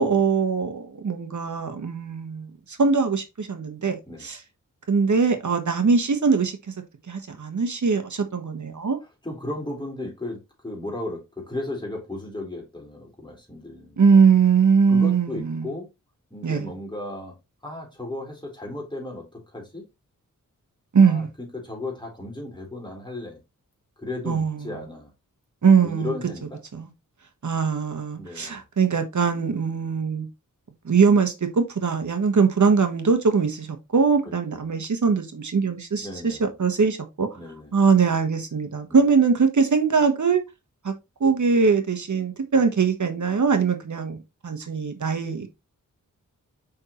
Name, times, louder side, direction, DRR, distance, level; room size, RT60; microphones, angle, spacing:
voice 1, 0.0-4.4 4.9-6.7 7.1-9.0 14.0-15.7 16.4-16.7 20.9-21.3 24.3-24.6 25.6-26.1 26.7-26.9 27.4-30.3 30.8-37.3 37.7-40.4 40.8-40.9 41.2-45.5, right 5 dB, 60° right, 1.3 m, -21 dB
voice 2, 9.2-14.0 14.9-15.9 16.3-17.4 17.6-19.9 21.0-23.4 24.0-25.1 25.8-26.6 28.1-28.6 34.6-34.7 36.0-36.5 37.3-37.8 38.9-39.0, left 2 dB, 15° left, 4.0 m, -35 dB
6.4 x 5.6 x 3.1 m
wide cardioid pair, 95°, 33 cm